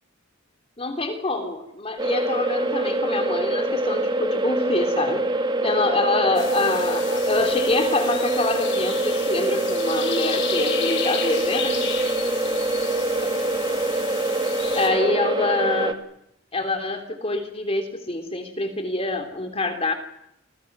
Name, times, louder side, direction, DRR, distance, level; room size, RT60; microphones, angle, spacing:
voice 1, 0.8-5.3 5.6-11.9 14.7-16.0 16.5-19.9, left 2 dB, 30° left, 6 dB, 3.4 m, -26 dB
sound 1, 2.0-15.9, right 2 dB, 20° right, 1.7 m, -24 dB
sound 2, 6.3-14.9, left 7 dB, 60° left, 5.7 m, -33 dB
29.0 x 25.5 x 6.3 m, 0.79 s
head